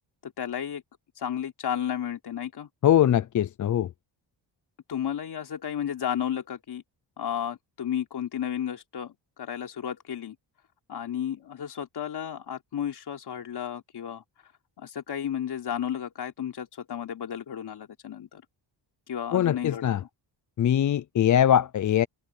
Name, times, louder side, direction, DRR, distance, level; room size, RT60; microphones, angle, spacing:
voice 1, 0.2-0.8 1.2-2.7 4.9-6.8 7.2-10.4 10.9-14.2 14.8-18.4 19.1-19.9, left 9 dB, 55° left, 3.8 m, -33 dB
voice 2, 2.8-3.9 19.3-20.0 20.6-22.1, left 10 dB, 40° left, 0.5 m, -22 dB
wide cardioid pair, 140°, 46 cm